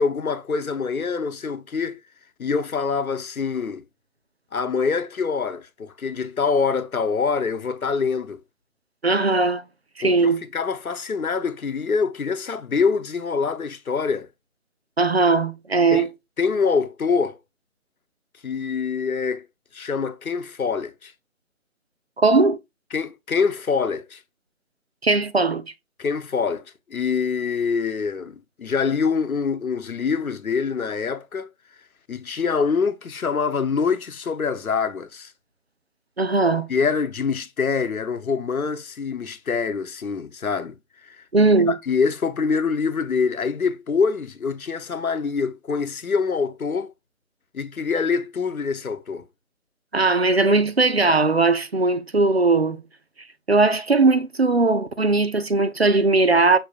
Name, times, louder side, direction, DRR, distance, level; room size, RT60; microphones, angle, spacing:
voice 1, 0.0-2.0 2.4-3.8 4.5-8.4 10.0-14.3 15.9-16.1 16.4-17.4 18.4-19.5 19.7-21.1 22.9-24.2 26.0-26.6 26.9-31.5 32.1-35.3 36.7-40.7 41.0-41.2 41.7-46.9 47.5-49.2, left 5 dB, 85° left, 1.0 m, -25 dB
voice 2, 9.0-9.6 10.0-10.4 15.0-16.1 22.2-22.6 25.0-25.6 36.2-36.7 41.3-41.8 49.9-52.8 53.5-56.6, right 3 dB, 50° right, 0.5 m, -19 dB
5.9 x 3.4 x 2.4 m
figure-of-eight pair, 175°, 41 cm